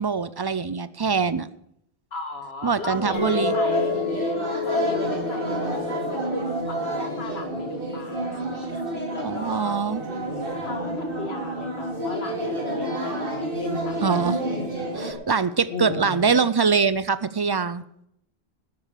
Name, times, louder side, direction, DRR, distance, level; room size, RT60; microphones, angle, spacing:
voice 1, 0.0-1.5 2.6-3.5 9.2-10.0 14.0-14.4 14.9-17.8, right 5 dB, 35° right, 16 dB, 0.4 m, -23 dB
voice 2, 2.1-4.0 4.6-8.4 9.1-9.8 10.6-14.7 15.7-16.4, left 2 dB, 70° left, 6 dB, 2.2 m, -35 dB
Chink clink, 3.1-7.5 7.8-8.3, left 11 dB, 15° left, 5.8 m, -32 dB
sound 1, 3.1-15.1, right 1 dB, 55° right, 2.6 m, -29 dB
13.0 x 9.7 x 6.8 m, 0.73 s
omnidirectional pair, 1.1 m